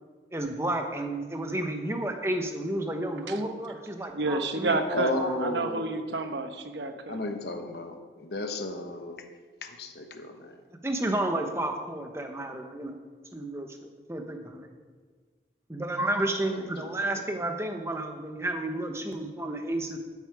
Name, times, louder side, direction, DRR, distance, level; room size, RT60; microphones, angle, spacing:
voice 1, 0.3-5.3 10.8-13.0 13.3-13.7 14.1-14.7 15.7-20.0, right 1 dB, 15° right, 4 dB, 1.0 m, -31 dB
voice 2, 4.1-5.1 5.4-7.2, right 3 dB, 85° right, 7 dB, 1.0 m, -30 dB
voice 3, 4.9-5.9 7.1-9.2 9.6-10.6 16.4-17.3, left 1 dB, 70° left, 5 dB, 1.2 m, -34 dB
13.0 x 8.3 x 4.8 m, 1.5 s
head